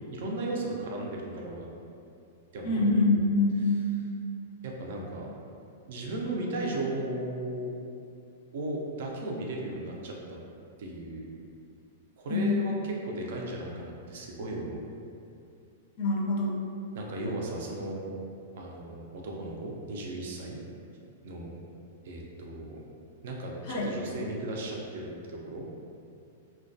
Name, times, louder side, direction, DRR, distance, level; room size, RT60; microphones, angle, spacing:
voice 1, 0.1-1.7 2.5-3.2 3.6-3.7 4.6-5.3 5.9-7.7 8.5-10.4 10.8-11.3 12.2-14.8 16.9-18.2 18.6-20.6 21.2-21.6 22.0-22.8 23.2-25.6, right 1 dB, 65° right, -1 dB, 0.4 m, -36 dB
voice 2, 2.6-3.9 12.3-12.5 16.0-16.5 23.7-23.9, left 2 dB, 55° left, -3 dB, 0.4 m, -25 dB
2.3 x 2.1 x 2.6 m, 2.5 s
hypercardioid pair, 150°, 0 cm